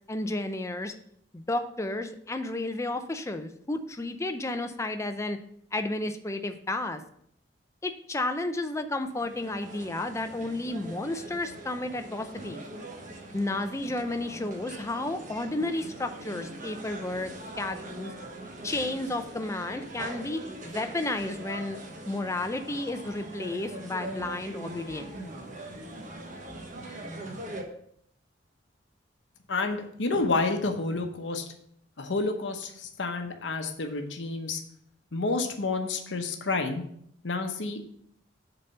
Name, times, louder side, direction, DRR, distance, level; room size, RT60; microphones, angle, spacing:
voice 1, 0.1-0.9 1.3-5.4 5.7-7.0 7.8-12.6 13.3-17.3 17.6-18.1 18.6-21.8 22.1-25.2, left 2 dB, 15° left, 7 dB, 0.5 m, -32 dB
sound 1, 9.0-27.6, right 1 dB, 45° right, 1.1 m, -42 dB
voice 2, 29.5-31.4 32.0-34.6 35.1-36.8 37.2-37.9, left 3 dB, 80° left, 5 dB, 0.9 m, -29 dB
7.0 x 4.0 x 5.5 m, 0.68 s
head